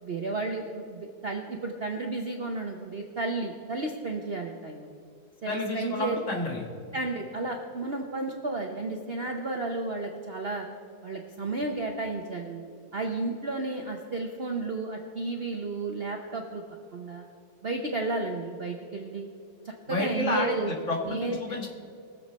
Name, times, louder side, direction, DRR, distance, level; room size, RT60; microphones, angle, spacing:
voice 1, 0.0-4.9 5.4-6.2 6.9-10.7 11.0-12.6 12.9-16.6 16.9-17.2 17.6-19.3 19.6-20.7 21.0-21.6, right 2 dB, 45° right, 2 dB, 0.8 m, -32 dB
voice 2, 5.5-6.6 19.9-21.7, left 2 dB, 45° left, 0 dB, 2.1 m, -30 dB
22.0 x 7.5 x 4.1 m, 2.4 s
omnidirectional pair, 1.9 m